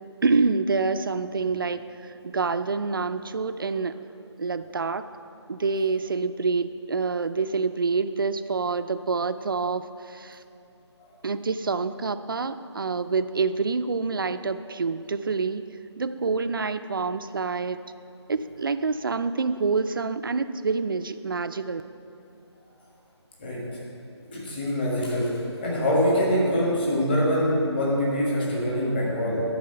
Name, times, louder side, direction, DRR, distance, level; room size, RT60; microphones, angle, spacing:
voice 1, 0.2-4.0 4.4-5.0 5.5-10.4 11.2-15.6 16.0-17.8 18.3-21.8, right 4 dB, 50° right, 11 dB, 0.4 m, -27 dB
voice 2, 24.3-25.3 25.6-29.4, equal, 20° left, -5 dB, 1.5 m, -24 dB
11.0 x 4.1 x 6.6 m, 2.7 s
figure-of-eight pair, 170°, 15 cm